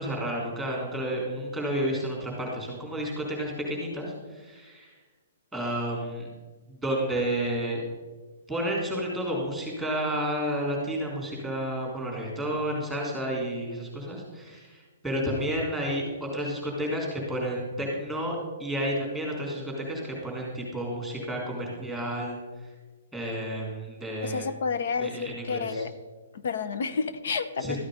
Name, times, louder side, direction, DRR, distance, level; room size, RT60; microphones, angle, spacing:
voice 1, 0.0-5.0 5.5-6.3 6.7-7.8 8.5-22.7 23.1-24.5 25.0-25.8 27.6-27.8, equal, ahead, -2 dB, 3.6 m, -31 dB
voice 2, 24.2-25.9 26.3-27.8, left 5 dB, 65° left, 12 dB, 0.9 m, -30 dB
13.5 x 9.2 x 5.1 m, 1.3 s
hypercardioid pair, 155°, 0 cm